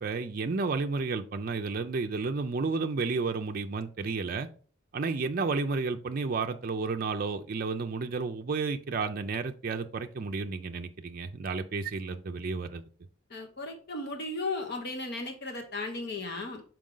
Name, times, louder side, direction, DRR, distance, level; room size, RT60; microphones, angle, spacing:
voice 1, 0.0-4.5 4.9-12.9, right 4 dB, 45° right, 5 dB, 0.4 m, -32 dB
voice 2, 13.3-16.6, left 2 dB, 55° left, 4 dB, 1.1 m, -35 dB
6.2 x 4.6 x 3.8 m, 0.41 s
head